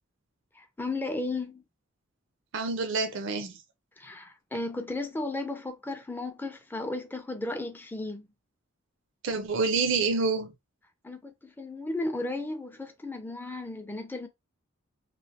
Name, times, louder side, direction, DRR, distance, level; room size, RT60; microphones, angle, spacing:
voice 1, 0.5-1.6 4.0-8.3 11.0-14.3, left 2 dB, 10° left, 0.4 m, -34 dB
voice 2, 2.5-3.6 9.2-10.5, right 4 dB, 65° right, 0.4 m, -27 dB
3.1 x 2.5 x 2.7 m
head